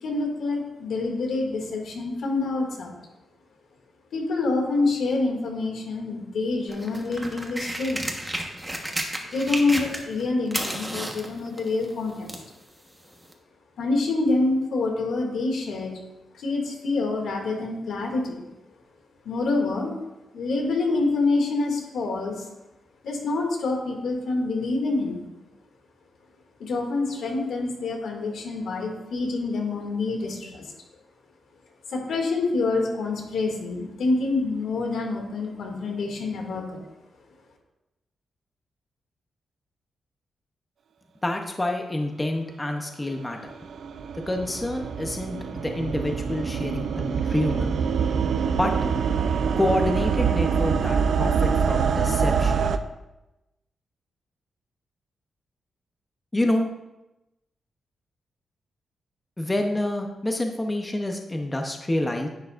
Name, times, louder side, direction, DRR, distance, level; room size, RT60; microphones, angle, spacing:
voice 1, 0.0-3.0 4.1-8.0 9.2-12.3 13.8-15.9 16.3-18.5 19.2-19.9 20.3-22.5 23.0-25.3 26.6-30.7 31.9-36.8, left 3 dB, 80° left, 1 dB, 2.2 m, -26 dB
sound 1, 6.7-10.2 10.5-12.5 13.3-13.4, right 1 dB, 10° right, 1.2 m, -32 dB
voice 2, 41.2-43.5 44.3-47.7 48.6-48.7 49.6-52.6 56.3-56.7 59.4-62.3, left 1 dB, 15° left, 3 dB, 0.7 m, -27 dB
sound 2, 43.1-52.8, right 6 dB, 70° right, 0.5 m, -25 dB
10.5 x 9.3 x 2.5 m, 0.97 s
wide cardioid pair, 140°, 0 cm